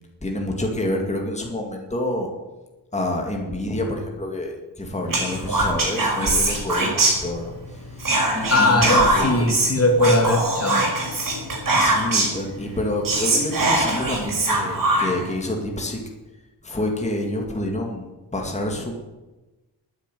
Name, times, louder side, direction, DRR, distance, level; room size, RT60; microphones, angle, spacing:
voice 1, 0.2-2.3 2.9-9.5 11.8-16.0 16.6-18.9, left 1 dB, 15° left, 1 dB, 2.1 m, -28 dB
Whispering, 5.1-7.6 8.0-12.4 12.8-12.9 13.0-15.3, right 2 dB, 45° right, 5.7 m, -22 dB
voice 2, 8.5-10.8, left 2 dB, 30° left, 3 dB, 2.2 m, -19 dB
13.5 x 9.6 x 9.2 m, 1.1 s
wide cardioid pair, 175°, 44 cm